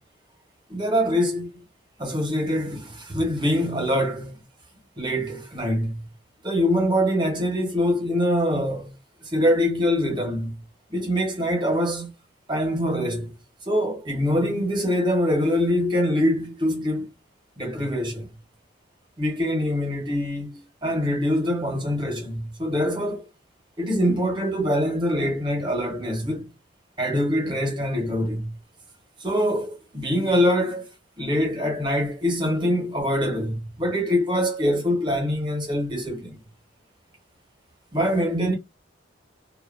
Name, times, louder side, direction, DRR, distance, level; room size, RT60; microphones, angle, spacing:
voice 1, 0.7-1.6 2.0-4.4 5.0-6.0 6.4-8.9 9.2-10.6 10.9-12.1 12.5-13.3 13.7-17.0 17.6-18.3 19.2-23.3 23.8-26.5 27.0-28.5 29.2-36.4 37.9-38.6, equal, 25° right, 0.9 m, -24 dB
2.8 x 2.2 x 2.5 m
head